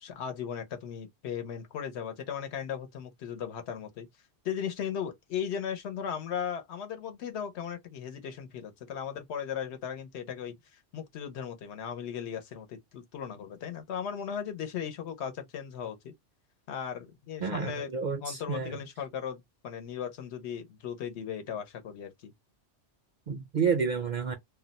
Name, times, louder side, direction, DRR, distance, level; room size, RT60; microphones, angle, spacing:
voice 1, 0.0-4.1 4.4-10.5 10.9-16.1 16.7-17.9 18.2-22.3, left 8 dB, 75° left, 1.0 m, -37 dB
voice 2, 17.4-18.8 23.3-24.3, right 6 dB, 55° right, 0.5 m, -30 dB
2.3 x 2.1 x 3.9 m
omnidirectional pair, 1.2 m